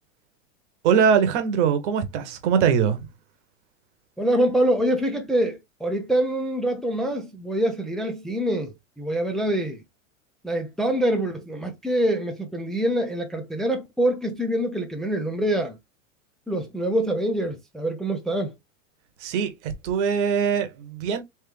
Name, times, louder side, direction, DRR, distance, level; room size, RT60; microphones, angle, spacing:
voice 1, 0.8-3.1 19.2-21.2, right 7 dB, 60° right, 1.2 m, -22 dB
voice 2, 4.2-9.8 10.4-15.8 16.5-18.5, right 1 dB, ahead, 0.6 m, -25 dB
3.5 x 3.2 x 3.1 m
hypercardioid pair, 105°, 39 cm